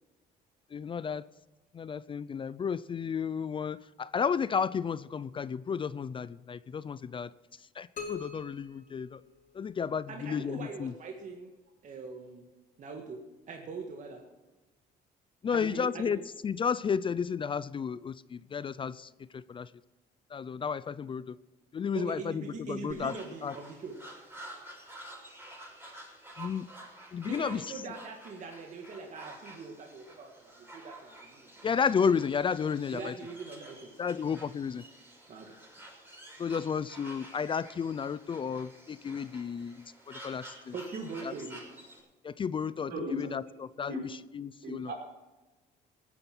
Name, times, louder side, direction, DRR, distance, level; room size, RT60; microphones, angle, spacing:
voice 1, 0.7-1.2 1.7-7.3 7.8-9.2 9.5-10.9 15.4-19.7 20.3-21.3 21.7-23.1 23.4-23.5 26.4-26.7 27.1-27.7 31.6-33.1 34.0-34.8 36.4-39.7 40.1-40.7 41.3-41.4 42.2-44.9, left 6 dB, 30° left, 18 dB, 0.5 m, -32 dB
sound 1, 8.0-9.9, left 5 dB, 50° left, 3.1 m, -44 dB
voice 2, 10.1-11.5 11.8-12.5 12.8-13.2 13.5-14.2 15.5-16.2 21.9-24.0 27.2-31.7 32.9-34.2 35.3-35.6 40.7-41.6, right 4 dB, 45° right, 2 dB, 2.0 m, -42 dB
sound 2, 22.9-42.0, right 1 dB, 10° right, 6.2 m, -50 dB
voice 3, 42.9-43.3 43.9-44.0 44.6-44.9, left 1 dB, 70° right, 0 dB, 5.6 m, -36 dB
17.5 x 9.9 x 6.1 m, 1.1 s
cardioid pair, 110°, 17 cm